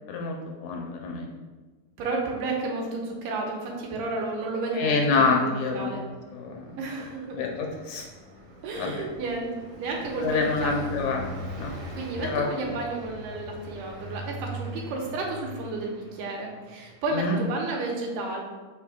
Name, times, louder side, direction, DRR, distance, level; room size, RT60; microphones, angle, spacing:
voice 1, 0.1-1.3 4.7-6.7 7.3-8.1 8.8-9.1 10.2-11.3 11.6-11.7 12.2-12.7 17.1-17.4, left 4 dB, 75° left, 1 dB, 1.9 m, -27 dB
voice 2, 2.0-6.0 6.8-7.4 8.6-9.5 9.8-10.7 11.9-18.4, right 3 dB, 85° right, 0 dB, 2.6 m, -32 dB
Car passing by, 6.1-16.9, equal, 65° right, 1.7 m, -41 dB
7.1 x 6.1 x 2.3 m, 1.3 s
omnidirectional pair, 3.8 m